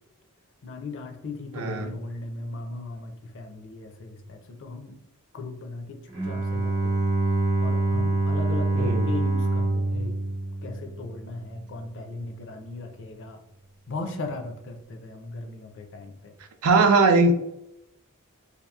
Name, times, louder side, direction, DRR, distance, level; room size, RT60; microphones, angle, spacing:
voice 1, 0.6-5.0 5.3-7.0 7.6-10.2 10.6-13.4 13.9-16.3, left 3 dB, 60° left, 5 dB, 0.5 m, -37 dB
voice 2, 1.5-1.9 8.7-9.1 16.6-17.4, right 3 dB, 70° right, 6 dB, 0.4 m, -20 dB
Bowed string instrument, 6.1-11.3, right 2 dB, 55° right, 0.9 m, -25 dB
2.8 x 2.4 x 2.2 m, 0.82 s
head